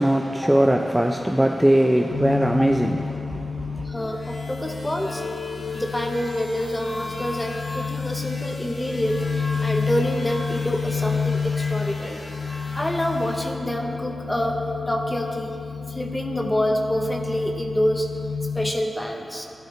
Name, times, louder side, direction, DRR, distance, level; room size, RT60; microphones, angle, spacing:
voice 1, 0.0-3.0, right 1 dB, 5° right, 0.4 m, -19 dB
sound 1, 2.1-18.7, left 5 dB, 70° left, 0.4 m, -30 dB
voice 2, 3.8-5.2 5.7-12.2 12.7-15.6 15.9-18.1 18.5-19.5, equal, 15° left, 0.8 m, -27 dB
sound 2, 3.9-13.5, left 1 dB, 35° left, 1.1 m, -39 dB
12.5 x 12.0 x 3.2 m
wide cardioid pair, 90°, 0 cm